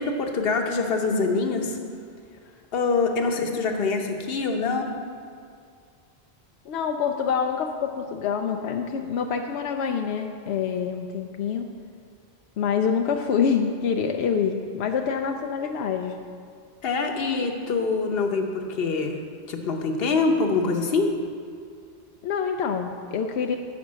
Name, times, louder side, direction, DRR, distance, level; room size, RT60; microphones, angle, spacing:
voice 1, 0.0-1.8 2.7-4.9 16.8-19.1 19.5-21.1, left 4 dB, 70° left, 3 dB, 1.1 m, -24 dB
voice 2, 6.7-11.7 12.6-16.2 22.2-23.6, left 6 dB, 90° left, 4 dB, 0.8 m, -26 dB
10.5 x 5.1 x 7.3 m, 2.3 s
omnidirectional pair, 1.1 m